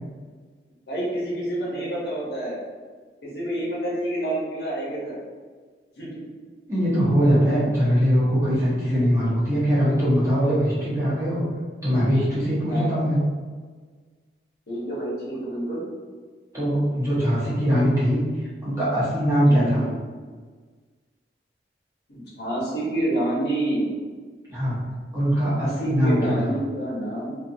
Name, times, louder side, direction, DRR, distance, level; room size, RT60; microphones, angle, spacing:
voice 1, 0.9-2.6 3.2-5.2 6.0-6.2 12.7-13.0 14.7-15.8 19.4-19.9 22.1-23.9 25.5-27.3, right 1 dB, 65° left, -6 dB, 0.9 m, -28 dB
voice 2, 6.7-11.4 11.8-13.2 16.5-18.2 18.6-19.9 24.5-24.8 25.1-26.5, equal, 15° right, -10 dB, 0.8 m, -21 dB
2.5 x 2.4 x 2.6 m, 1.5 s
head